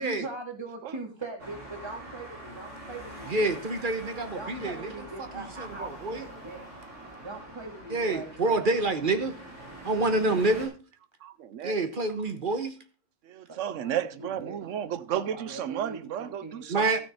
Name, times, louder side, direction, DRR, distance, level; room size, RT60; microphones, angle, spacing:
voice 1, 0.0-3.5 4.3-6.6 7.2-8.8 13.5-14.6 15.1-17.0, right 3 dB, 20° right, 2.0 m, -41 dB
Traffic noise roadway noise, 1.4-10.7, right 1 dB, 65° right, 4.0 m, -44 dB
voice 2, 3.3-4.9 5.6-6.2 7.9-9.4 9.8-10.8 11.6-12.8 16.7-17.0, right 2 dB, 45° right, 1.2 m, -27 dB
voice 3, 11.2-11.8 13.2-16.9, right 10 dB, 80° right, 1.0 m, -33 dB
14.0 x 6.4 x 4.1 m
omnidirectional pair, 1.3 m